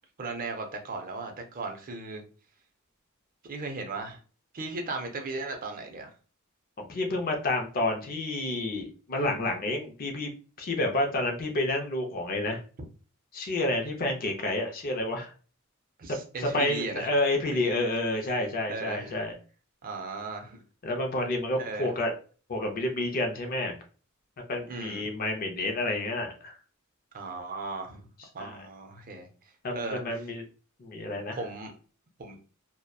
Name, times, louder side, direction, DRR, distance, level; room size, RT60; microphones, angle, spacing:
voice 1, 0.2-2.2 3.4-4.2 4.5-6.1 16.0-17.1 18.7-19.2 19.8-20.6 21.6-21.9 24.7-25.0 27.1-28.1 28.3-29.3 29.7-30.2 31.4-31.7 32.2-32.4, right 3 dB, 40° right, 0.5 m, -36 dB
voice 2, 6.8-10.3 10.6-12.6 13.3-15.3 16.4-19.3 20.8-22.1 22.5-23.7 24.5-26.6 28.4-28.7 29.6-30.4 30.8-31.4, left 2 dB, 45° left, 0.5 m, -29 dB
2.6 x 2.1 x 2.2 m
head